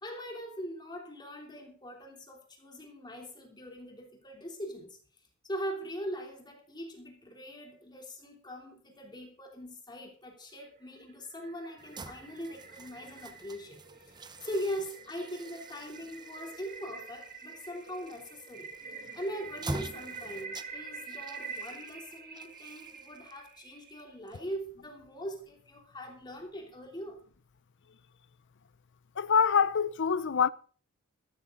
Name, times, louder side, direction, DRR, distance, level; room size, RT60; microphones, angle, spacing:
voice 1, 0.0-5.0 5.4-13.8 14.2-27.2, equal, 20° left, 3.4 m, -41 dB
sound 1, 10.7-24.1, right 4 dB, 45° right, 2.6 m, -47 dB
sound 2, 11.8-24.9, right 2 dB, 20° right, 0.9 m, -46 dB
voice 2, 29.2-30.5, left 6 dB, 60° left, 0.7 m, -25 dB
15.5 x 13.5 x 3.9 m
head